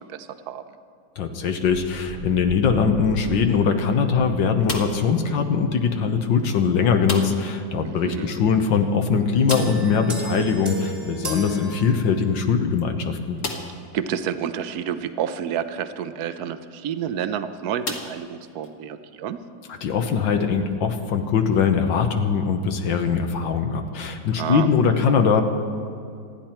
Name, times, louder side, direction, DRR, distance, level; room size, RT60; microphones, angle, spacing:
voice 1, 0.1-0.6 7.8-8.3 13.9-19.4 24.4-24.7, right 8 dB, 60° right, 11 dB, 1.1 m, -29 dB
voice 2, 1.2-13.4 19.7-25.4, left 6 dB, 70° left, 6 dB, 1.7 m, -21 dB
sound 1, 1.6-5.0 5.3-5.4 6.4-6.5 6.7-6.8 7.2-7.3 7.6-7.8 8.5-8.6 8.8-10.6, right 1 dB, 40° right, 0.7 m, -40 dB
sound 2, 4.6-5.2 7.0-7.6 7.8-7.9 8.3-8.4 9.4-10.0 11.8-11.9 12.5-12.6 13.4-13.9 14.6-14.7 16.7-16.9 17.8-18.7, left 3 dB, 40° left, 1.7 m, -32 dB
sound 3, 9.5-12.5, equal, 20° right, 1.9 m, -34 dB
27.0 x 10.5 x 4.4 m, 2.4 s
omnidirectional pair, 2.1 m